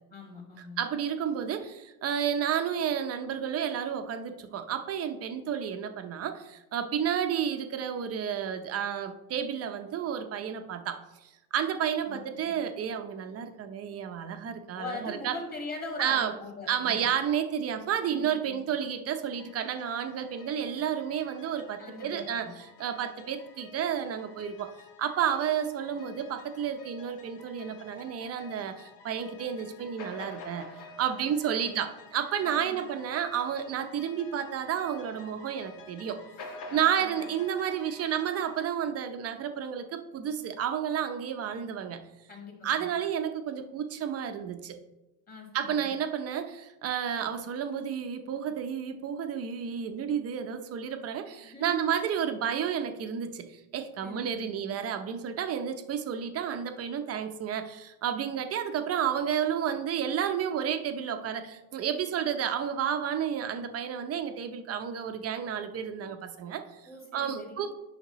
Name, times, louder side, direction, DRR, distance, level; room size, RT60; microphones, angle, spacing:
voice 1, 0.1-0.8 12.1-12.5 14.8-17.1 18.1-18.6 21.8-22.5 31.2-31.3 31.6-31.9 32.4-32.9 36.7-37.3 42.3-42.9 45.3-46.0 51.4-51.9 54.0-54.6 66.8-67.6, left 3 dB, 20° left, 0 dB, 2.1 m, -42 dB
voice 2, 0.8-15.4 16.0-16.3 16.7-24.7 25.0-36.2 36.7-42.0 42.6-44.8 45.5-66.8 67.1-67.7, right 8 dB, 30° right, 7 dB, 0.6 m, -31 dB
sound 1, 19.3-38.7, left 2 dB, 85° left, 1.9 m, -49 dB
9.4 x 5.9 x 3.0 m, 0.98 s
supercardioid pair, 120°, 46 cm